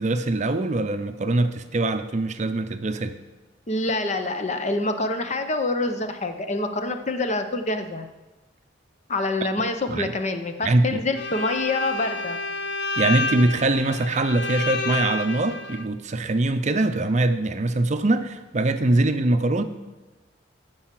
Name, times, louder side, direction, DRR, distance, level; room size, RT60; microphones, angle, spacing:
voice 1, 0.0-3.2 9.9-10.1 10.6-11.0 13.0-19.6, right 2 dB, 40° right, 9 dB, 0.6 m, -23 dB
voice 2, 3.7-8.1 9.1-12.4, left 2 dB, 40° left, 7 dB, 0.8 m, -26 dB
Bowed string instrument, 11.1-15.8, left 3 dB, 70° left, 0.8 m, -29 dB
12.0 x 4.8 x 7.4 m, 1.1 s
head